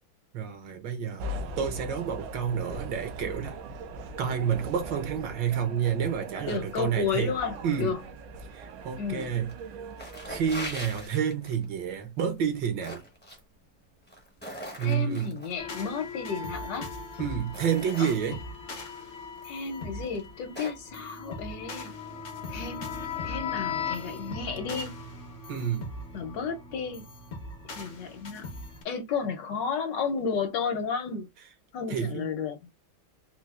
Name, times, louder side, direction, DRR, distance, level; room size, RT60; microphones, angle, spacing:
voice 1, 0.3-1.3 1.6-3.6 4.2-7.3 7.6-7.9 8.5-9.5 10.2-13.0 14.8-15.4 17.2-18.4 25.5-25.9 31.9-32.3, right 8 dB, 70° right, 1.5 m, -29 dB
sound 1, 1.2-11.1, right 2 dB, 90° right, 1.4 m, -40 dB
voice 2, 6.5-8.0 9.0-9.4 14.8-16.9 18.0-18.1 19.4-22.0 22.5-22.9 23.2-24.9 26.1-27.1 27.7-28.5 28.8-31.3 31.7-32.6, left 5 dB, 70° left, 1.4 m, -32 dB
sound 2, 9.2-9.6 9.9-11.6 12.4-13.4 14.0-15.5 16.6-16.7 17.2-18.6 19.4-19.5 20.0-20.9, equal, 10° left, 0.5 m, -41 dB
sound 3, 15.6-28.8, left 4 dB, 50° left, 0.9 m, -38 dB
4.3 x 2.4 x 2.3 m
omnidirectional pair, 2.1 m